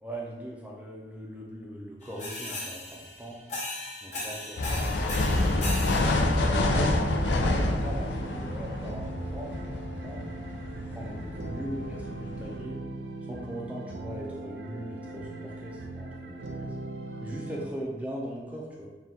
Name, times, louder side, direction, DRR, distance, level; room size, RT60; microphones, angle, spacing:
voice 1, 0.0-3.4 4.0-4.8 6.7-10.2 10.7-12.8 13.3-16.7 17.2-18.9, equal, 10° right, -3 dB, 0.4 m, -40 dB
sound 1, 2.0-6.8, left 2 dB, 40° left, 0.8 m, -38 dB
sound 2, 4.6-12.6, left 2 dB, 85° left, 0.5 m, -28 dB
sound 3, 6.2-17.7, right 2 dB, 65° right, 0.4 m, -39 dB
4.2 x 2.4 x 3.6 m, 1.2 s
head